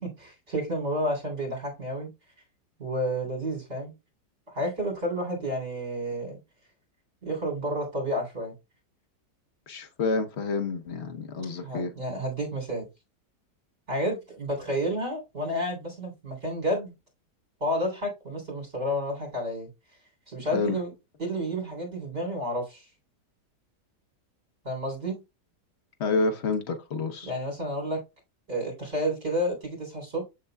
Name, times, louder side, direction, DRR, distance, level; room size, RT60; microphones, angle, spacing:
voice 1, 0.0-2.1 2.8-3.9 4.5-6.4 7.2-8.5 11.6-12.9 13.9-16.9 17.6-19.7 20.3-20.9 21.2-22.9 24.6-25.2 27.2-28.0 28.5-30.2, equal, 40° right, 3.7 m, -30 dB
voice 2, 9.7-11.9 20.5-20.8 26.0-27.3, left 4 dB, 50° left, 0.8 m, -28 dB
7.1 x 6.6 x 2.2 m
omnidirectional pair, 1.9 m